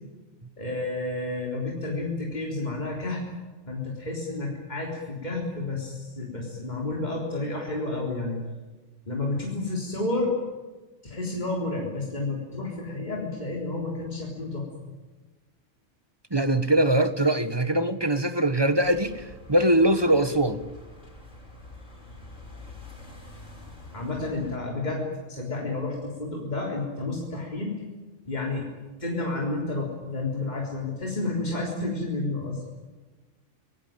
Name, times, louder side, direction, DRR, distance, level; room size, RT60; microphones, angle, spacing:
voice 1, 0.6-3.2 3.7-8.4 9.0-10.3 11.0-14.7 23.9-27.7 28.3-28.7 29.0-32.6, left 2 dB, 35° left, 4.0 m, -30 dB
voice 2, 16.3-19.2 19.5-20.6, right 1 dB, 20° right, 1.3 m, -22 dB
sound 1, 18.8-24.6, left 2 dB, 85° left, 6.9 m, -46 dB
26.5 x 18.5 x 9.1 m
omnidirectional pair, 1.3 m